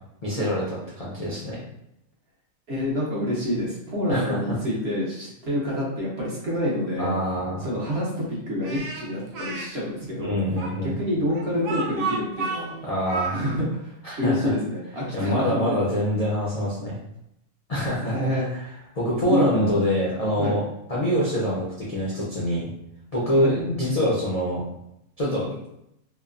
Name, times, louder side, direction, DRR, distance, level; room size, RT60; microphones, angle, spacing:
voice 1, 0.2-0.6 1.0-1.6 4.1-4.4 7.0-7.6 10.2-10.9 12.8-13.3 14.0-14.5 15.1-17.0 17.7-18.5 18.9-20.6 20.9-22.7 23.1-24.6 25.2-25.6, equal, 50° left, -7 dB, 0.4 m, -25 dB
voice 2, 2.7-7.1 7.6-10.4 10.8-12.7 13.3-15.8 18.0-18.5 19.2-19.7 20.4-20.6 23.3-23.6, left 1 dB, 55° right, -5 dB, 0.9 m, -27 dB
Speech, 8.6-9.7 10.6-13.6, right 4 dB, 75° right, 1.0 m, -31 dB
2.9 x 2.1 x 2.4 m, 0.80 s
omnidirectional pair, 1.5 m